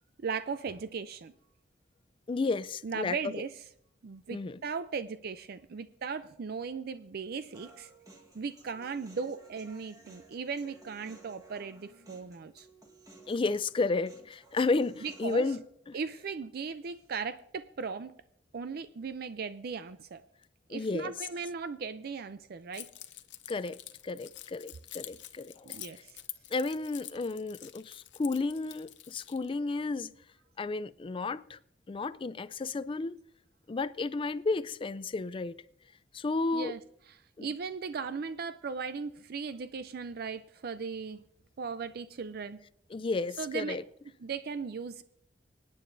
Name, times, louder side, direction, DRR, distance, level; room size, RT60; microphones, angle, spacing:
voice 1, 0.2-1.3 2.8-3.5 4.0-7.9 8.3-12.7 15.0-15.5 15.9-18.1 18.5-20.2 20.7-22.9 25.6-26.2 36.5-36.8 37.4-41.2 41.6-42.6 43.4-43.8 44.2-45.0, right 5 dB, 55° right, 0.4 m, -37 dB
voice 2, 2.3-3.2 4.3-4.6 13.3-15.6 15.9-16.0 20.7-21.1 23.5-23.8 24.0-25.8 26.5-30.1 30.6-31.6 31.9-33.2 33.7-35.6 36.1-36.8 37.4-37.5 42.9-43.8, left 3 dB, 30° left, 0.4 m, -32 dB
Human voice, 7.5-15.6, right 2 dB, 20° right, 1.4 m, -56 dB
Keys jangling, 22.7-29.5, left 14 dB, 80° left, 0.7 m, -47 dB
27.0 x 9.2 x 2.6 m
head